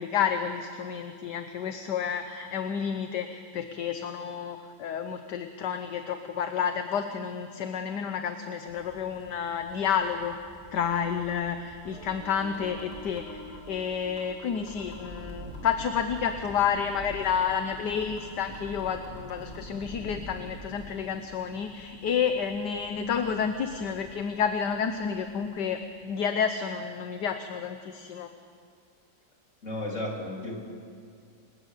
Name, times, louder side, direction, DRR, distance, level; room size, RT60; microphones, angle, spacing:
voice 1, 0.0-10.4 10.7-28.3, left 7 dB, 70° left, 7 dB, 1.6 m, -30 dB
sound 1, 8.7-25.9, equal, 10° right, 6.2 m, -47 dB
sound 2, 11.7-11.8 12.2-12.3 12.5-13.7 14.2-14.3 14.5-15.7 16.2-16.3 16.5-17.7 18.2-18.3 18.5-19.6, left 4 dB, 85° left, 5.9 m, -51 dB
sound 3, 11.8-15.4, right 2 dB, 70° right, 3.0 m, -47 dB
voice 2, 29.6-30.6, left 1 dB, 40° left, -1 dB, 4.2 m, -33 dB
28.5 x 19.0 x 8.3 m, 2.3 s
omnidirectional pair, 1.9 m